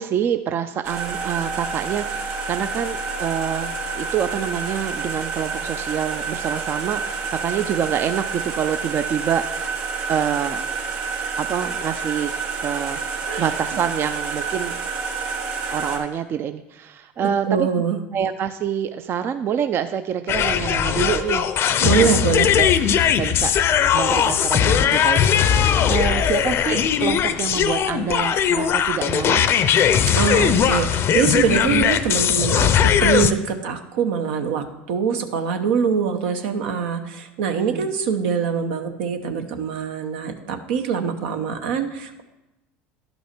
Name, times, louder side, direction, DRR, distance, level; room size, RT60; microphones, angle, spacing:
voice 1, 0.0-9.7 10.1-10.6 11.4-12.3 12.6-13.0 13.4-14.8 15.7-17.7 18.1-21.5 21.8-22.2 22.6-22.7 23.2-23.5 23.9-29.5 37.5-37.9, right 9 dB, 40° right, 9 dB, 0.4 m, -26 dB
sound 1, 0.8-16.0, right 4 dB, 60° right, 2.3 m, -29 dB
voice 2, 17.2-18.0 21.8-22.5 30.1-42.2, right 6 dB, 80° right, 6 dB, 1.0 m, -23 dB
sound 2, 20.3-33.3, left 8 dB, 45° left, 0.5 m, -19 dB
11.5 x 5.4 x 4.5 m, 0.95 s
supercardioid pair, 95°, 6 cm